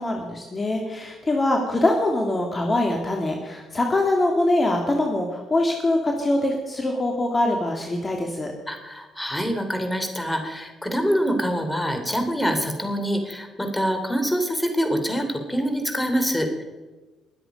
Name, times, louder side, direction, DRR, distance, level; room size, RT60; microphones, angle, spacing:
voice 1, 0.0-8.5, left 1 dB, 30° left, 2 dB, 2.2 m, -23 dB
voice 2, 8.7-16.6, equal, 10° left, 5 dB, 3.1 m, -25 dB
21.5 x 8.1 x 5.2 m, 1.2 s
supercardioid pair, 65°, 0 cm